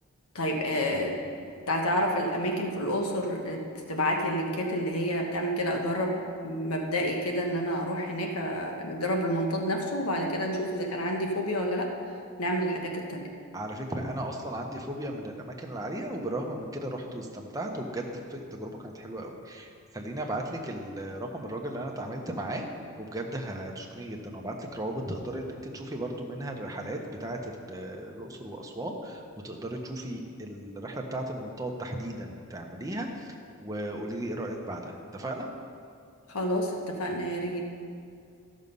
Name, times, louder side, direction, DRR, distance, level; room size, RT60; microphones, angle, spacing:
voice 1, 0.3-3.6 3.9-11.9 12.4-13.3 36.3-37.7, equal, 85° left, 1 dB, 1.2 m, -29 dB
voice 2, 13.5-22.6 23.0-33.3 33.6-35.5, right 1 dB, 15° right, 1 dB, 0.9 m, -36 dB
14.0 x 6.4 x 5.4 m, 2.3 s
head